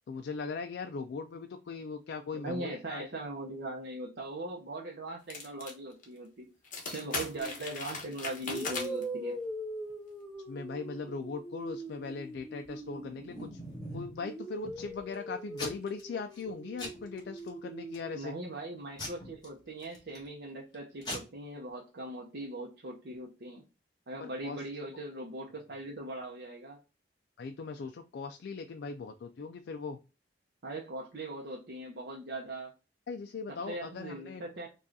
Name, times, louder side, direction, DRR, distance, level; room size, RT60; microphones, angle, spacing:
voice 1, 0.1-3.1 10.5-13.6 13.9-18.3 24.2-24.6 27.4-30.0 33.1-34.5, left 4 dB, 70° left, 6 dB, 0.3 m, -39 dB
voice 2, 2.3-6.5 6.8-9.4 18.1-23.6 24.1-26.8 30.6-32.7 33.5-34.7, right 2 dB, 65° right, -2 dB, 0.7 m, -40 dB
sound 1, 5.3-5.7 6.0-6.1 6.6-9.0, left 4 dB, 45° left, 1.1 m, -38 dB
sound 2, 7.4-7.6 8.4-13.8 14.2-18.2, right 1 dB, ahead, 0.4 m, -42 dB
Packing tape duct tape / Tearing, 12.8-14.2 14.6-15.1 15.6-16.0 16.3-16.5 16.8-17.5 17.9-18.3 19.0-20.3 20.7-20.8 21.0-21.2, left 1 dB, 25° left, 1.4 m, -42 dB
4.9 x 2.3 x 2.6 m, 0.31 s
head